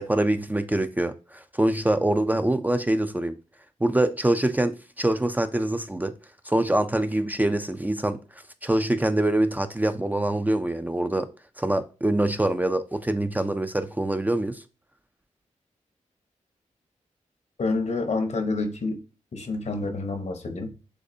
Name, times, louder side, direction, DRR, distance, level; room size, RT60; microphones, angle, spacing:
voice 1, 0.0-3.4 3.8-6.1 6.5-8.2 8.6-11.3 11.6-14.6, right 1 dB, 15° right, 0.4 m, -24 dB
voice 2, 17.6-19.0 19.3-20.7, left 3 dB, 60° left, 0.9 m, -28 dB
6.5 x 2.3 x 2.7 m
cardioid pair, 50°, 13 cm